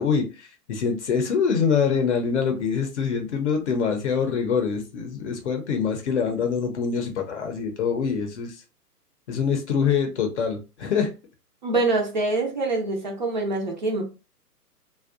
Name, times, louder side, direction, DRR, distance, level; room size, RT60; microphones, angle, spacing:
voice 1, 0.0-8.5 9.3-11.1, left 6 dB, 45° left, 0.6 m, -25 dB
voice 2, 11.6-14.0, right 2 dB, 30° right, 0.4 m, -25 dB
2.5 x 2.1 x 2.4 m
hypercardioid pair, 135°, 48 cm